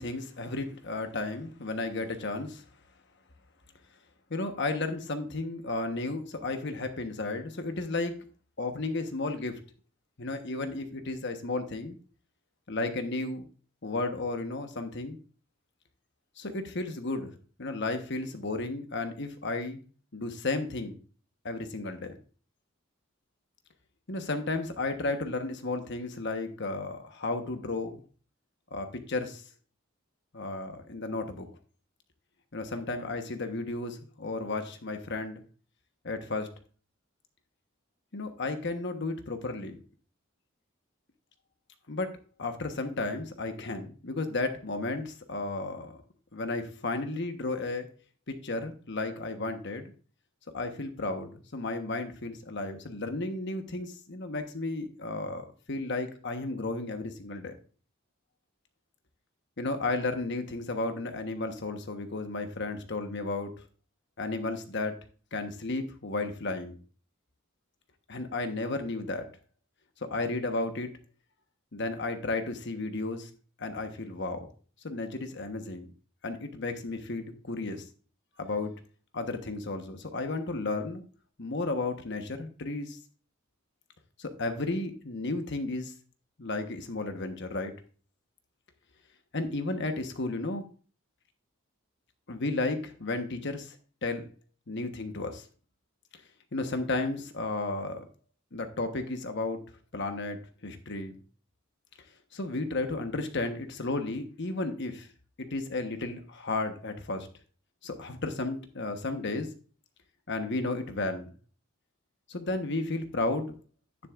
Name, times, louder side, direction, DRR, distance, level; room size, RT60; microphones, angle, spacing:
voice 1, 0.0-2.6 4.3-8.1 8.6-9.6 10.2-12.0 12.7-13.5 13.8-15.2 16.4-19.8 20.1-21.0 21.4-22.2 24.1-28.0 28.7-29.4 30.3-31.5 32.5-35.4 36.0-36.5 38.1-39.8 41.9-42.1 42.4-45.9 46.3-47.9 48.3-49.9 50.5-57.6 59.6-63.5 64.2-65.0 65.3-66.8 68.1-69.3 70.1-70.9 71.7-73.3 73.6-74.5 74.8-75.9 76.2-77.8 78.4-78.7 79.1-81.0 81.4-83.0 84.2-85.9 86.4-87.7 89.3-90.6 92.3-93.8 94.0-94.3 94.7-95.4 96.5-98.0 98.5-99.6 99.9-101.1 102.3-105.1 105.4-107.3 107.8-109.5 110.3-111.3 112.3-113.5, left 2 dB, 60° left, 7 dB, 1.1 m, -33 dB
10.5 x 9.8 x 2.5 m, 0.39 s
head